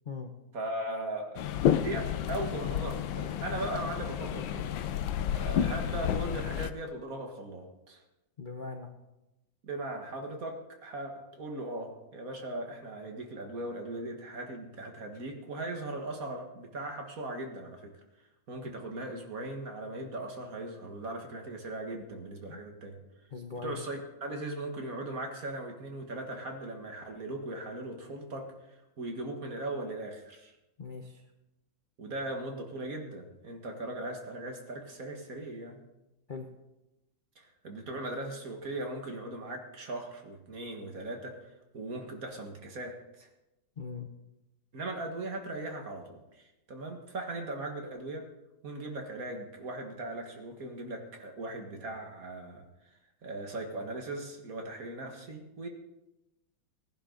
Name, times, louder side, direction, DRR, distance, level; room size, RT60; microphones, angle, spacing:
voice 1, 0.5-4.7 5.3-8.0 9.6-17.9 18.5-23.0 23.6-30.5 32.0-35.8 37.4-41.4 41.7-43.3 44.7-48.2 48.6-52.6 53.2-55.7, right 2 dB, 50° right, 3 dB, 2.0 m, -39 dB
sound 1, 1.4-6.7, left 10 dB, 80° left, 1.5 m, -31 dB
voice 2, 8.4-8.9 22.5-22.6 23.3-23.8 30.8-31.2 36.3-36.5 43.8-44.1, left 4 dB, 40° left, 3 dB, 0.8 m, -40 dB
18.5 x 10.5 x 3.9 m, 0.96 s
omnidirectional pair, 2.1 m